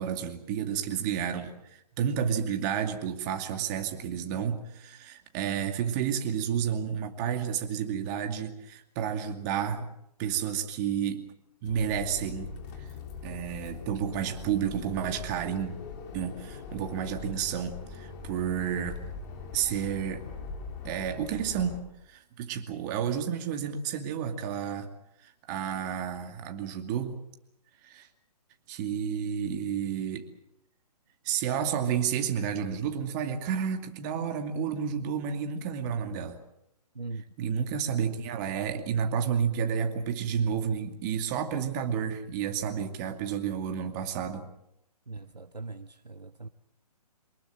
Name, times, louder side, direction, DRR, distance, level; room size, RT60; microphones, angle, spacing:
voice 1, 0.0-9.9 10.2-11.2 11.6-12.5 13.2-15.7 16.1-19.0 19.5-20.2 20.8-24.9 25.5-27.2 27.8-28.1 28.7-30.2 31.2-36.4 37.4-44.5, right 8 dB, 25° right, 2.4 m, -31 dB
sound 1, 11.7-21.8, left 5 dB, 30° left, 3.8 m, -41 dB
voice 2, 45.1-46.5, right 3 dB, 85° right, 1.0 m, -40 dB
24.0 x 20.5 x 7.6 m
figure-of-eight pair, 135°, 20 cm